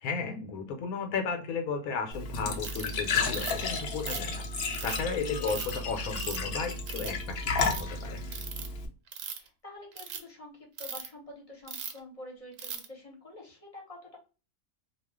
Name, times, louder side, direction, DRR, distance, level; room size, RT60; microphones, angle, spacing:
voice 1, 0.0-8.2, left 5 dB, 80° left, 4 dB, 1.1 m, -34 dB
Glass / Trickle dribble / Fill (with liquid), 2.1-8.9, left 4 dB, 60° left, 0.6 m, -33 dB
Ratchet pawl, 2.6-2.9 3.3-3.7 4.1-5.0 5.5-5.7 6.2-6.5 6.9-7.2 7.5-7.8 8.3-8.7 9.1-9.5 9.9-10.2 10.8-11.1 11.7-12.0 12.6-12.9, right 7 dB, 80° right, 1.1 m, -38 dB
voice 2, 5.2-5.7 9.3-14.2, left 2 dB, 30° left, -2 dB, 0.8 m, -47 dB
2.4 x 2.4 x 3.4 m, 0.34 s
omnidirectional pair, 1.5 m